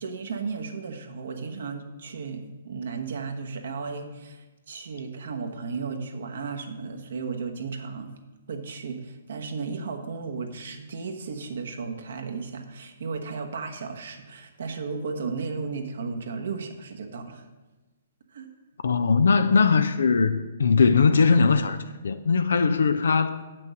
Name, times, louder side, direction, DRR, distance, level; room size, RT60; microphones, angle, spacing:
voice 1, 0.0-8.1 8.5-17.4 18.3-18.5, right 4 dB, 65° right, 4 dB, 1.1 m, -34 dB
voice 2, 18.8-21.8 22.0-23.4, left 5 dB, 70° left, 11 dB, 0.5 m, -20 dB
7.7 x 6.1 x 6.2 m, 1.2 s
figure-of-eight pair, 125°, 0 cm